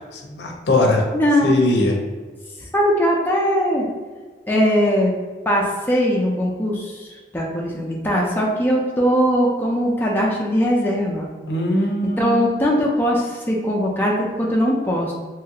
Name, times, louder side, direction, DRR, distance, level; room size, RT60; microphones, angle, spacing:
voice 1, 0.0-1.1 1.4-2.0 11.5-12.5, left 1 dB, 75° left, 1 dB, 0.5 m, -20 dB
voice 2, 1.1-1.5 2.7-3.9 4.5-5.1 5.5-7.1 7.3-11.3 12.2-15.1, equal, 10° left, -3 dB, 0.3 m, -20 dB
3.0 x 2.4 x 2.8 m, 1.4 s
head